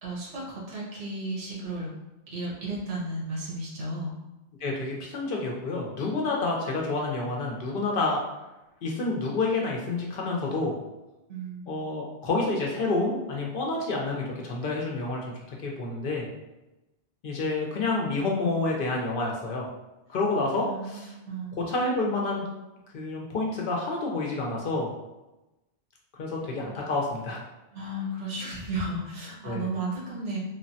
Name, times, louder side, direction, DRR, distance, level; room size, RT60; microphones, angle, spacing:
voice 1, 0.0-1.9 2.3-4.1 11.3-12.1 20.6-21.6 26.3-26.8 27.7-30.4, right 2 dB, 85° right, -5 dB, 1.3 m, -34 dB
voice 2, 4.6-8.2 8.8-10.7 11.7-16.3 17.2-19.7 20.1-21.1 21.7-22.4 22.9-24.9 26.2-27.4 29.4-29.7, left 3 dB, 60° left, -1 dB, 0.6 m, -29 dB
3.2 x 2.1 x 2.6 m, 1.0 s
omnidirectional pair, 1.2 m